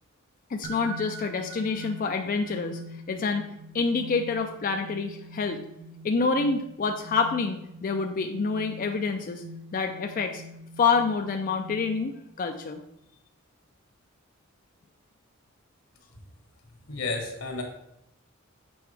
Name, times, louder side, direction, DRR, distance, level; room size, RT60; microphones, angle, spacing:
voice 1, 0.5-2.8 3.1-3.4 3.7-5.6 6.0-9.4 9.7-10.4 10.8-12.1 12.4-12.8, left 4 dB, 40° left, 5 dB, 0.4 m, -27 dB
sound 1, 0.6-12.4, equal, 50° right, 0.7 m, -43 dB
voice 2, 16.9-17.6, left 3 dB, 90° left, 2 dB, 1.4 m, -31 dB
6.9 x 4.5 x 3.3 m, 0.81 s
head